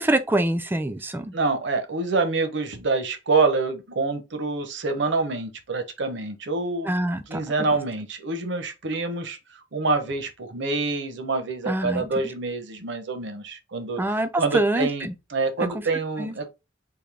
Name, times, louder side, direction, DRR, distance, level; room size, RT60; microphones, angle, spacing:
voice 1, 0.0-1.3 6.8-7.4 11.7-12.1 14.0-15.1 15.6-15.7 16.2-16.3, right 1 dB, 10° right, 0.4 m, -25 dB
voice 2, 1.3-6.9 7.3-16.5, right 3 dB, 65° right, 0.8 m, -26 dB
3.7 x 2.7 x 3.2 m
head